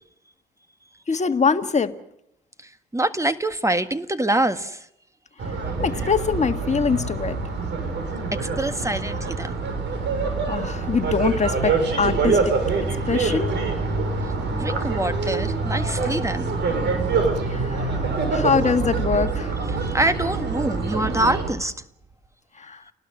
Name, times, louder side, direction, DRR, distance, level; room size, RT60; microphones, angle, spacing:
voice 1, 1.1-2.0 5.5-7.4 10.5-12.6 13.1-13.6 17.4-19.5 22.6-22.8, left 5 dB, 35° left, 1.8 m, -24 dB
voice 2, 2.9-4.8 8.4-9.5 14.5-16.5 19.8-21.7, right 1 dB, 15° right, 1.7 m, -25 dB
sound 1, 5.4-21.5, right 4 dB, 60° right, 6.8 m, -25 dB
29.0 x 19.5 x 6.1 m
hypercardioid pair, 55°, 21 cm